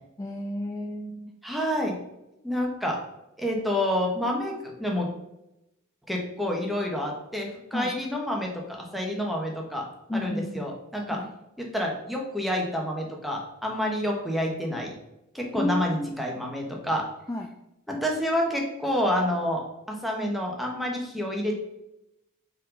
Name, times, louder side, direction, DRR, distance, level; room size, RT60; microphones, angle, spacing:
voice 1, 0.2-1.3 7.7-7.9 10.1-10.7 11.1-11.3 15.6-16.2 17.3-17.5, left 1 dB, 15° left, 3 dB, 0.4 m, -32 dB
voice 2, 1.4-2.0 2.4-3.0 3.4-5.1 6.1-9.9 10.1-11.2 11.6-14.9 15.3-17.1 17.9-21.6, equal, ahead, -1 dB, 1.1 m, -28 dB
5.4 x 3.9 x 5.1 m, 0.87 s
head